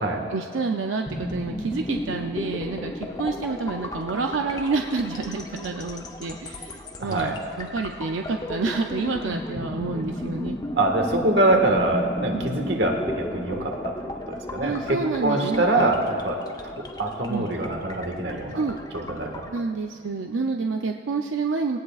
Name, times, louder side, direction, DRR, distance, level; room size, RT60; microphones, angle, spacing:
voice 1, 0.3-10.6 12.3-12.4 14.6-15.9 17.3-17.5 18.6-18.8 19.5-21.8, right 4 dB, 90° right, 3 dB, 0.5 m, -28 dB
sound 1, 1.0-19.6, left 1 dB, 20° left, 0.7 m, -34 dB
voice 2, 7.0-7.3 10.8-13.9 14.3-16.4 16.6-18.6 18.9-19.5, right 2 dB, 60° right, 2 dB, 1.6 m, -24 dB
19.0 x 17.5 x 2.4 m, 2.3 s
head